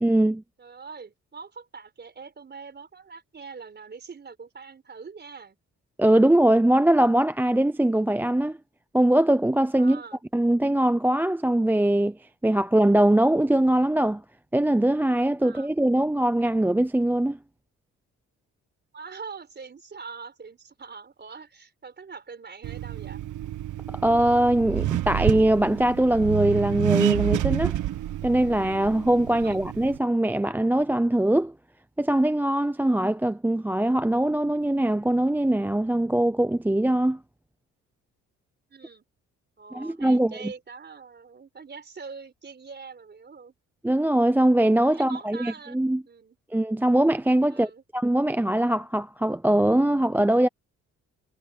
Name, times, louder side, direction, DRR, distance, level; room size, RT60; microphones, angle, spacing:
voice 1, 0.0-0.4 6.0-8.6 8.9-10.0 10.3-12.2 12.4-14.2 14.5-17.4 23.9-27.8 28.2-31.5 32.0-37.2 39.7-40.4 43.8-46.0 46.5-50.5, right 1 dB, 5° right, 0.6 m, -22 dB
voice 2, 0.6-5.6 9.8-10.2 15.4-15.7 18.9-23.2 29.3-29.6 38.7-39.0 39.6-43.5 44.9-45.8 46.0-46.4 47.5-47.8, right 5 dB, 35° right, 4.4 m, -43 dB
Accelerating revving vroom, 22.6-30.0, right 13 dB, 80° right, 1.6 m, -29 dB
cardioid pair, 90°, 30 cm